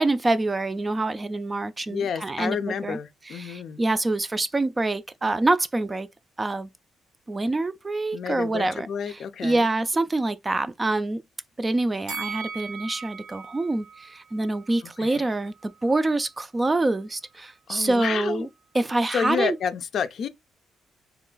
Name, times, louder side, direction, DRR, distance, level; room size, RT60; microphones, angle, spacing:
voice 1, 0.0-3.0 3.3-6.1 6.4-6.7 7.3-11.2 11.6-18.5 18.7-19.6, right 2 dB, 20° right, 0.4 m, -26 dB
voice 2, 1.9-3.8 8.1-9.7 15.0-15.3 17.7-18.5 19.1-20.3, left 7 dB, 65° left, 0.4 m, -30 dB
Bell, 12.1-15.3 15.6-15.7, right 5 dB, 85° right, 0.7 m, -38 dB
3.0 x 2.4 x 3.7 m
cardioid pair, 90°, 0 cm